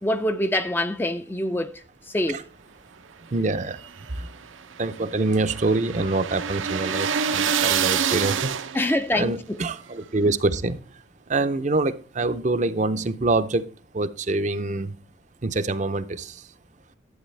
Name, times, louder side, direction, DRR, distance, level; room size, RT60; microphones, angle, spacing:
voice 1, 0.0-1.7 2.1-2.4 8.7-9.3, left 1 dB, 10° left, 0.4 m, -24 dB
voice 2, 3.3-4.3 4.8-8.6 9.1-10.8 11.3-13.7 13.9-15.0 15.4-16.5, right 2 dB, 35° right, 0.6 m, -25 dB
sound 1, 3.6-9.0, right 7 dB, 85° right, 0.7 m, -27 dB
11.5 x 7.9 x 3.3 m
head